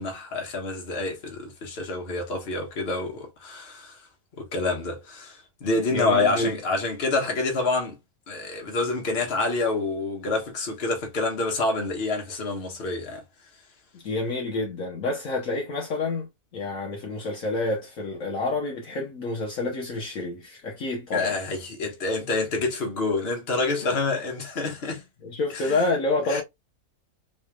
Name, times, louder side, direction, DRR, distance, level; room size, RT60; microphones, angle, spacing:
voice 1, 0.0-4.0 4.3-8.0 8.3-13.2 21.1-25.0 25.5-25.8 26.3-26.4, left 3 dB, 40° left, 1.3 m, -27 dB
voice 2, 5.9-6.5 13.9-21.3 25.2-26.4, left 2 dB, 60° left, 1.3 m, -28 dB
4.2 x 3.1 x 2.3 m
omnidirectional pair, 1.7 m